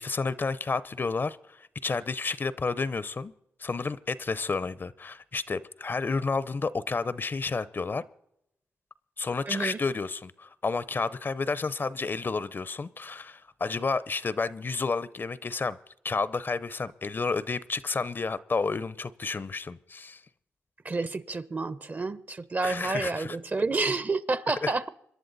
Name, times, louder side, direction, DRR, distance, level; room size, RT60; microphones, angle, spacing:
voice 1, 0.0-3.3 3.6-8.0 9.2-15.8 16.0-20.2 22.6-23.4 24.6-24.7, left 4 dB, 45° left, 0.7 m, -31 dB
voice 2, 9.5-9.8 20.8-24.9, right 3 dB, 40° right, 0.9 m, -29 dB
26.5 x 11.0 x 4.0 m
cardioid pair, 55°, 5 cm